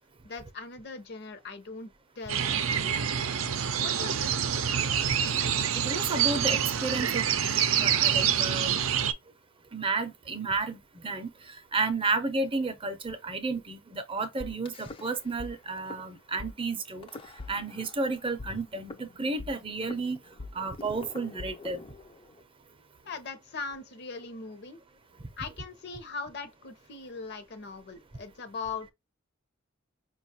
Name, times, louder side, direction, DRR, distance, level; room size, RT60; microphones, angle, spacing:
voice 1, 0.2-1.9 2.2-3.3 3.8-4.7 23.0-24.8 25.4-28.9, left 4 dB, 55° left, 0.7 m, -40 dB
sound 1, 2.3-9.1, right 8 dB, 80° right, 0.5 m, -27 dB
voice 2, 5.8-8.8 9.7-10.8 11.0-17.1 17.5-20.2 20.5-21.8, right 3 dB, 25° right, 0.5 m, -32 dB
sound 2, 14.4-15.5 15.8-16.0 16.4-16.5 17.0-18.0 18.4-22.4, left 3 dB, 25° left, 0.4 m, -43 dB
5.2 x 2.3 x 2.7 m
head